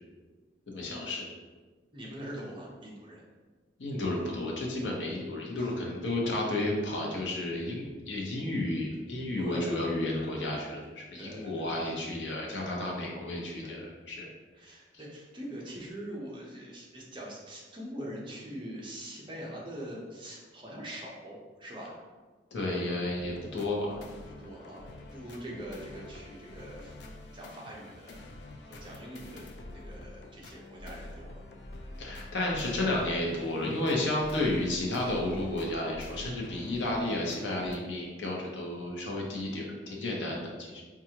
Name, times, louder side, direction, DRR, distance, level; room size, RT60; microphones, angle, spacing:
voice 1, 0.7-1.3 3.8-14.3 22.5-24.0 32.0-40.8, left 1 dB, 85° left, -2 dB, 0.8 m, -32 dB
voice 2, 1.9-3.2 5.6-5.7 9.4-9.8 11.2-11.7 13.6-13.8 14.5-21.9 24.3-27.0 27.3-28.2 28.6-31.4, right 1 dB, 25° right, -4 dB, 0.7 m, -43 dB
sound 1, 23.2-37.8, left 2 dB, 65° left, 0.4 m, -46 dB
4.6 x 2.4 x 2.8 m, 1.3 s
head